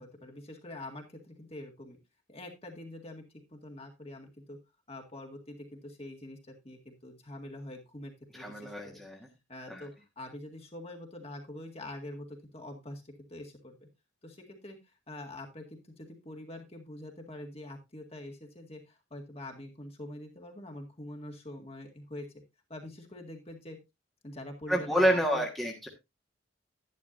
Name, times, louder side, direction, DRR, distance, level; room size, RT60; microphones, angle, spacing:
voice 1, 0.0-2.0 2.3-3.2 3.5-4.6 4.9-9.0 9.5-13.9 14.2-22.3 22.7-23.8 24.2-25.5, left 1 dB, 30° left, 2 dB, 2.0 m, -45 dB
voice 2, 8.3-9.2 9.7-9.8 24.7-25.9, equal, ahead, -2 dB, 1.5 m, -28 dB
11.0 x 10.5 x 2.6 m, 0.22 s
head